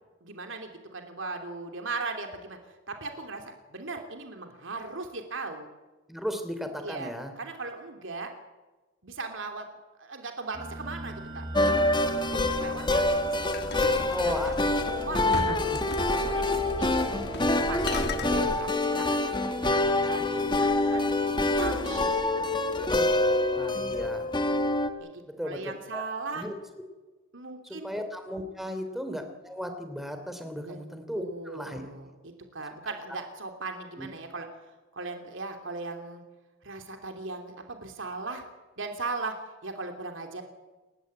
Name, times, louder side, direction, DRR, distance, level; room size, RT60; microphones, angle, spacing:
voice 1, 0.2-5.7 6.8-8.3 9.0-9.6 10.0-11.5 12.0-14.5 14.8-16.9 17.5-21.0 21.6-22.6 25.0-26.5 27.3-27.9 28.6-28.9 30.6-30.8 31.1-36.2 36.6-38.4 38.8-40.4, right 3 dB, 65° right, 4 dB, 3.0 m, -38 dB
voice 2, 6.1-7.3 14.1-14.5 15.2-15.8 22.9-23.0 23.5-24.3 25.4-26.0 26.3-26.5 27.6-31.8 32.8-32.9 34.0-34.1, equal, ahead, 7 dB, 3.0 m, -36 dB
sound 1, 10.5-18.5, right 1 dB, 20° right, 6.8 m, -38 dB
sound 2, 11.5-24.9, left 2 dB, 20° left, 1.7 m, -26 dB
sound 3, 13.5-14.8 15.3-16.3 17.2-17.5 17.8-18.3, left 3 dB, 50° left, 1.8 m, -37 dB
29.5 x 14.5 x 9.6 m, 1.2 s
head